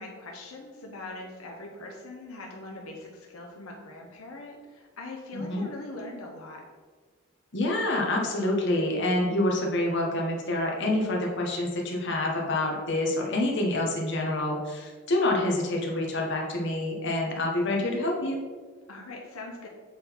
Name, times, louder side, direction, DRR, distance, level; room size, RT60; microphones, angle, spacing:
voice 1, 0.0-6.6 18.9-19.7, left 2 dB, 90° left, 0 dB, 1.0 m, -41 dB
voice 2, 5.3-5.7 7.5-18.4, left 1 dB, 55° left, 0 dB, 1.3 m, -27 dB
7.5 x 3.9 x 4.6 m, 1.4 s
head